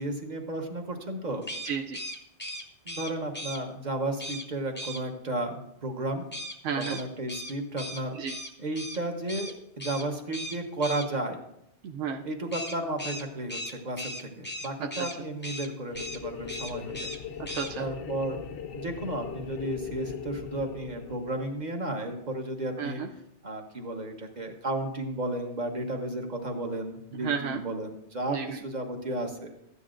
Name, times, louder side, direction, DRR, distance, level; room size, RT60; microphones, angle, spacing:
voice 1, 0.0-1.5 2.8-6.2 6.7-8.2 8.6-11.4 12.2-17.1 17.8-18.4 18.7-23.0 23.4-29.5, right 1 dB, 40° right, 3 dB, 1.1 m, -33 dB
sound 1, 1.4-3.6 4.2-4.5 4.8-5.0 6.3-9.0 9.3-9.5 9.8-10.1 10.3-11.1 12.5-15.2 15.4-15.7 15.9-16.2 16.5-17.2 17.5-17.7, equal, 10° left, 0.6 m, -38 dB
voice 2, 1.6-2.0 6.6-7.0 8.1-8.3 11.8-12.2 14.8-14.9 17.4-17.9 22.8-23.1 27.2-27.6 28.3-28.6, right 7 dB, 90° right, 4 dB, 0.9 m, -32 dB
sound 2, 15.9-21.7, left 7 dB, 85° left, 1.0 m, -39 dB
13.0 x 9.6 x 2.5 m, 0.81 s
omnidirectional pair, 1.2 m